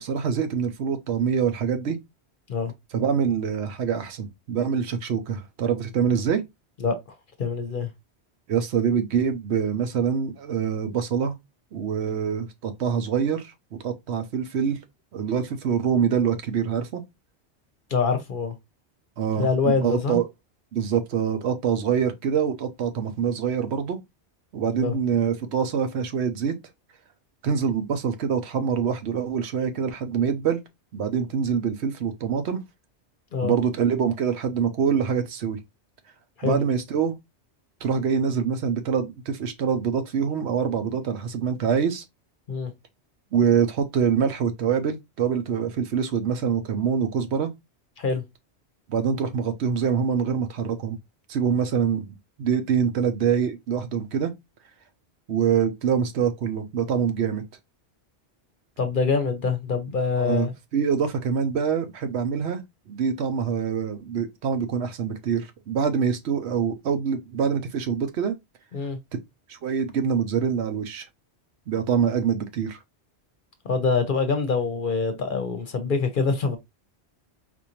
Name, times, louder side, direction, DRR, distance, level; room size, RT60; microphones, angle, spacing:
voice 1, 0.0-2.0 2.9-6.4 8.5-11.3 11.7-14.8 15.1-17.0 19.2-20.2 20.7-24.0 24.5-26.5 27.4-30.6 30.9-32.6 33.4-35.6 36.4-37.1 37.8-42.0 43.3-47.5 48.9-51.0 51.3-52.1 52.4-54.3 55.3-57.4 60.2-62.6 62.9-68.3 69.5-71.1 71.7-72.8, right 7 dB, 75° right, 0.9 m, -25 dB
voice 2, 7.4-7.9 17.9-18.5 19.4-20.2 24.8-25.0 33.3-33.5 36.4-36.6 42.5-42.7 48.0-48.2 58.8-60.5 68.7-69.0 73.6-76.6, left 4 dB, 55° left, 0.8 m, -25 dB
4.4 x 2.5 x 2.9 m
omnidirectional pair, 1.2 m